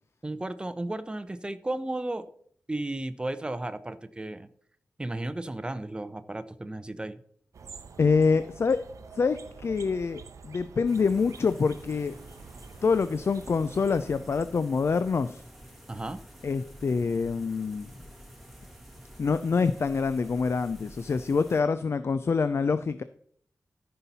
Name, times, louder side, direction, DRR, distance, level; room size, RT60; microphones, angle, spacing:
voice 1, 0.2-2.3 2.7-4.5 5.0-7.2 15.9-16.2, right 2 dB, 20° right, 12 dB, 0.6 m, -34 dB
sound 1, 7.5-14.5, right 5 dB, 85° right, 0.6 m, -47 dB
voice 2, 8.0-8.8 9.1-12.1 12.8-15.4 16.4-17.9 19.2-23.0, left 5 dB, 55° left, 12 dB, 0.4 m, -26 dB
sound 2, 10.9-21.6, equal, ahead, 2.0 m, -49 dB
14.0 x 5.6 x 4.1 m, 0.63 s
wide cardioid pair, 115°, 5 cm